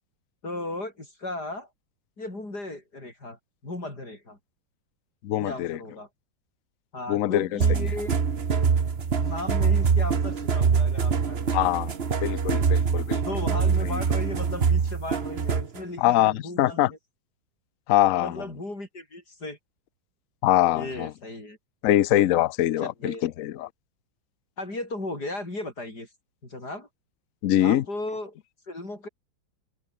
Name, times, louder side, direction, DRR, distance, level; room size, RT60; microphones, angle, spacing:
voice 1, 0.4-1.7 2.2-4.4 5.4-6.1 6.9-8.2 9.2-11.7 13.2-17.0 18.2-19.6 20.7-21.6 22.8-23.3 24.6-26.1 26.4-26.9 27.6-28.3 28.7-29.1, left 2 dB, 50° left, 8.8 m, -36 dB
voice 2, 5.2-5.8 7.1-7.9 11.5-11.9 12.2-13.2 13.8-14.0 16.0-16.9 17.9-18.4 20.4-21.1 21.8-23.7 27.4-27.8, left 14 dB, 75° left, 0.7 m, -23 dB
sound 1, 7.6-15.8, right 6 dB, 35° right, 1.3 m, -24 dB
omnidirectional pair, 2.2 m